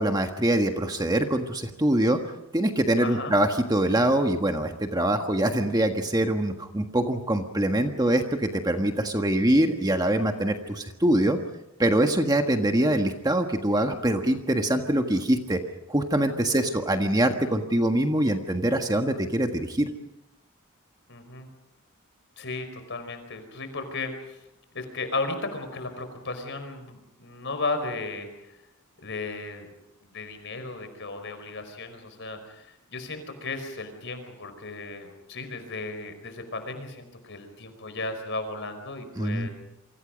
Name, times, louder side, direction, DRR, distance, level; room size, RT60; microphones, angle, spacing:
voice 1, 0.0-2.2 2.5-11.4 11.8-15.6 15.9-19.9 39.2-39.5, right 1 dB, 20° right, 5 dB, 1.5 m, -24 dB
voice 2, 3.0-3.3 12.3-12.4 16.5-16.7 21.1-21.5 22.4-24.4 24.7-28.6 29.0-29.7 30.0-39.5, left 3 dB, 55° left, 8 dB, 5.0 m, -35 dB
28.0 x 25.0 x 5.2 m, 0.86 s
head